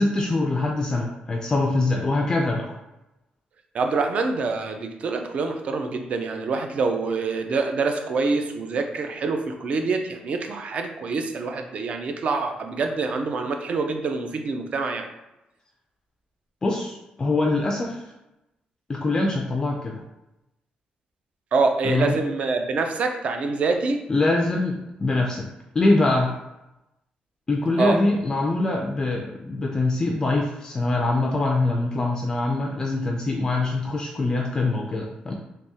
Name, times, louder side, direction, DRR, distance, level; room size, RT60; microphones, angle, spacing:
voice 1, 0.0-2.7 16.6-18.1 18.9-20.0 21.8-22.2 24.1-25.5 25.7-26.3 27.5-35.3, left 2 dB, 20° left, 0 dB, 0.3 m, -23 dB
voice 2, 3.7-15.1 21.5-24.0 27.8-28.0, right 4 dB, 45° right, 5 dB, 0.4 m, -25 dB
3.4 x 2.9 x 2.8 m, 0.94 s
cardioid pair, 155°, 3 cm